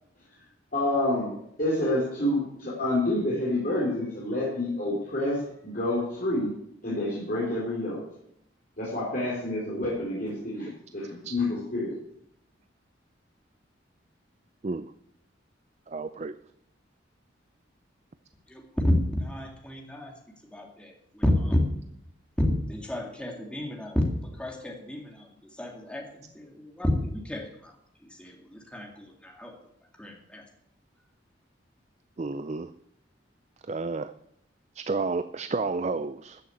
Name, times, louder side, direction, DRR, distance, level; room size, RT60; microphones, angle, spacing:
voice 1, 0.7-1.3 1.6-6.5 6.8-8.0 8.8-11.9, left 1 dB, 45° left, -6 dB, 4.0 m, -28 dB
voice 2, 15.9-16.4 32.2-32.7 33.7-34.1 34.7-36.4, right 3 dB, 35° right, 12 dB, 0.4 m, -31 dB
voice 3, 18.5-18.9 19.2-20.1 20.5-21.6 22.4-24.0 24.4-25.3 25.6-26.1 26.4-27.5 28.2-29.5 30.0-30.4, left 1 dB, 5° left, 1 dB, 2.1 m, -30 dB
14.0 x 6.6 x 8.4 m, 0.74 s
head